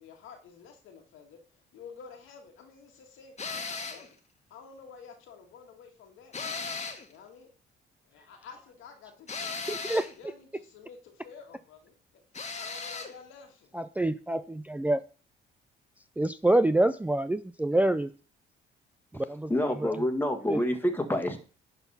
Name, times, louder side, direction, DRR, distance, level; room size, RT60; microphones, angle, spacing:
voice 1, 0.0-4.1 4.5-6.4 7.1-7.5 8.0-9.7 10.2-13.7, left 6 dB, 85° left, 3 dB, 1.9 m, -51 dB
sound 1, 3.4-4.1 6.3-7.1 9.3-10.1 12.3-13.1, left 4 dB, 35° left, 1.5 m, -36 dB
voice 2, 9.7-10.1 13.7-15.0 16.2-18.1 19.1-19.5 19.8-20.0 20.5-20.6, right 1 dB, 5° right, 11 dB, 0.3 m, -26 dB
voice 3, 19.5-21.4, left 1 dB, 10° left, 5 dB, 1.6 m, -28 dB
10.5 x 3.8 x 5.5 m, 0.37 s
cardioid pair, 90°, 20 cm